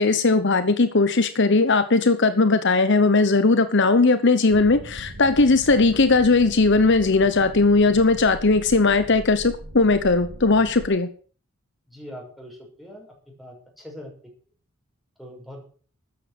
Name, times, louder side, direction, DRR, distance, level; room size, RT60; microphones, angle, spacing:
voice 1, 0.0-11.1, left 3 dB, 55° left, 12 dB, 1.0 m, -18 dB
sound 1, 4.5-10.9, right 1 dB, 90° right, 2.2 m, -40 dB
voice 2, 11.9-13.1 13.4-14.1 15.2-15.6, equal, ahead, -1 dB, 6.5 m, -41 dB
13.5 x 9.4 x 7.9 m, 0.43 s
head